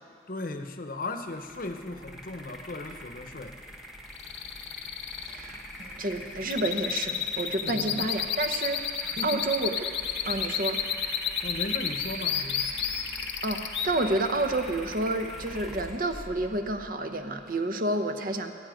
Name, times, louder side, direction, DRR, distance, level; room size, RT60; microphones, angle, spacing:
voice 1, 0.3-3.9 7.6-8.2 9.0-9.4 11.4-12.7, left 2 dB, 50° left, 7 dB, 0.9 m, -37 dB
sound 1, 1.3-17.6, equal, ahead, 1.2 m, -43 dB
sound 2, 4.1-13.9, left 8 dB, 80° left, 0.9 m, -31 dB
voice 2, 5.3-9.7 10.3-10.8 13.4-18.5, right 2 dB, 50° right, 7 dB, 0.9 m, -30 dB
22.5 x 10.0 x 5.1 m, 2.5 s
head